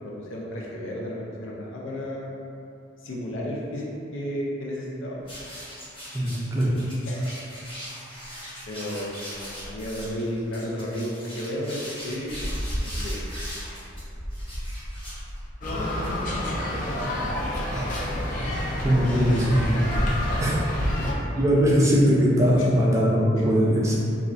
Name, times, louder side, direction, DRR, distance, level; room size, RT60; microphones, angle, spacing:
voice 1, 0.0-2.3 3.0-5.2 7.1-7.3 8.7-12.5 12.8-13.2 20.8-21.1 22.6-22.8 23.4-23.5, equal, 90° left, -3 dB, 0.5 m, -33 dB
sound 1, 5.2-15.7, equal, 30° left, 0.9 m, -36 dB
voice 2, 6.1-6.7 17.7-17.9 18.8-19.8 20.4-20.6 21.3-23.9, equal, 15° right, -5 dB, 0.4 m, -21 dB
sound 2, 15.6-21.1, left 1 dB, 45° left, 0.5 m, -28 dB
3.2 x 2.4 x 2.5 m, 2.7 s
head